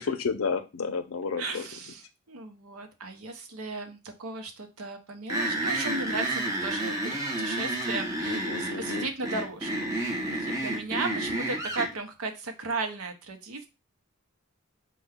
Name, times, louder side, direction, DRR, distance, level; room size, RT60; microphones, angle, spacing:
voice 1, 0.0-1.7 8.3-9.1 10.4-10.6, left 5 dB, 75° left, 9 dB, 0.5 m, -32 dB
voice 2, 1.4-2.0 2.3-13.7, right 3 dB, 85° right, 6 dB, 0.7 m, -36 dB
sound 1, 5.3-11.9, right 1 dB, 15° right, 0.7 m, -30 dB
4.4 x 2.3 x 3.4 m, 0.27 s
head